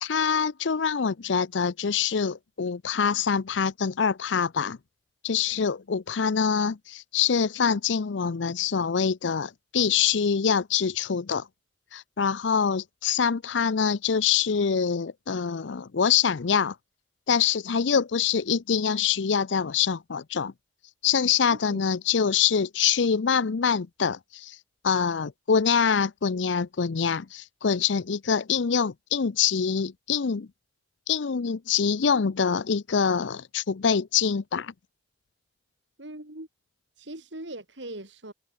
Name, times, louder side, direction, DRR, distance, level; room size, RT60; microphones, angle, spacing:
voice 1, 0.0-4.8 5.2-11.5 11.9-16.8 17.3-20.5 21.0-24.6 24.8-30.5 31.1-34.7, left 6 dB, 75° left, 0.6 m, -25 dB
voice 2, 21.5-21.9 36.0-36.5 37.0-38.3, right 1 dB, 70° right, 4.5 m, -40 dB
head